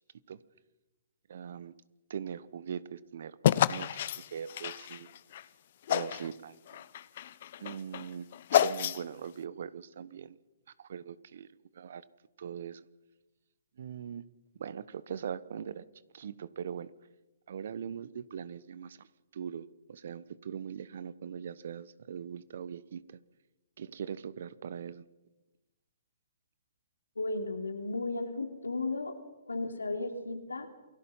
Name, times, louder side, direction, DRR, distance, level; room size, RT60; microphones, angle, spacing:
voice 1, 1.3-1.7 2.1-3.4 3.7-5.1 5.9-6.6 7.6-8.3 8.5-10.4 10.8-11.5 11.7-12.0 12.4-12.9 13.8-14.2 14.5-15.8 16.1-16.9 17.5-19.1 19.3-23.2 23.8-25.0, right 7 dB, 60° right, 18 dB, 1.1 m, -41 dB
sound 1, 3.4-5.4 5.9-6.3 6.7-9.3, left 11 dB, 55° left, 0.9 m, -29 dB
voice 2, 27.2-29.1 29.5-30.7, left 2 dB, 90° left, 5 dB, 3.1 m, -34 dB
28.0 x 18.5 x 5.7 m, 1.1 s
hypercardioid pair, 130°, 0 cm